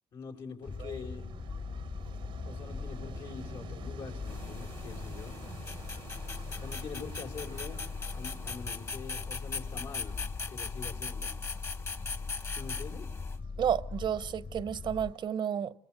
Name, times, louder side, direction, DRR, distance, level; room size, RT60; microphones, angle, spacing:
voice 1, 0.1-1.3 2.4-5.4 6.6-7.8 8.1-10.2 10.5-11.3 12.5-13.1, left 5 dB, 75° left, 5.0 m, -44 dB
sound 1, 0.6-15.2, right 9 dB, 90° right, 1.4 m, -52 dB
sound 2, 0.7-15.1, left 4 dB, 55° left, 1.9 m, -41 dB
sound 3, 4.2-13.4, left 4 dB, 35° left, 1.4 m, -41 dB
voice 2, 13.6-15.7, right 8 dB, 65° right, 1.0 m, -31 dB
28.0 x 23.0 x 7.9 m
cardioid pair, 85°, 8 cm